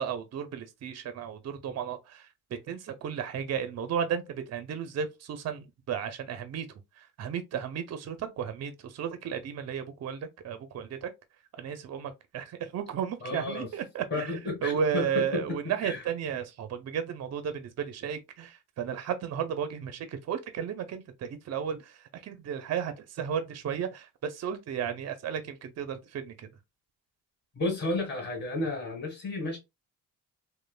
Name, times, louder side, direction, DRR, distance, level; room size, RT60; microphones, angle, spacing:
voice 1, 0.0-2.2 2.5-6.7 7.2-11.1 11.6-14.3 14.6-26.5, right 8 dB, 50° right, 0.6 m, -34 dB
voice 2, 13.2-13.7 14.1-16.0 27.5-29.6, left 2 dB, 30° left, 1.5 m, -32 dB
3.1 x 2.1 x 2.2 m
cardioid pair, 90°, 33 cm